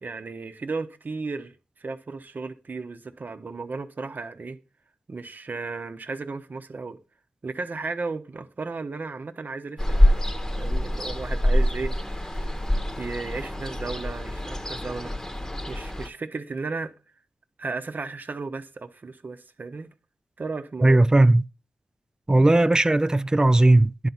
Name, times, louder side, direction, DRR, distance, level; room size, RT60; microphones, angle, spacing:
voice 1, 0.0-1.5 1.8-4.6 5.1-7.0 7.4-12.6 13.0-15.1 15.7-16.9 17.6-19.9 20.4-21.1, right 4 dB, 55° right, 1.0 m, -34 dB
Ocean, 9.8-16.1, left 1 dB, 15° left, 1.1 m, -25 dB
voice 2, 20.8-21.4 22.3-24.1, right 2 dB, 20° right, 0.4 m, -17 dB
10.5 x 4.0 x 5.9 m
cardioid pair, 45°, 4 cm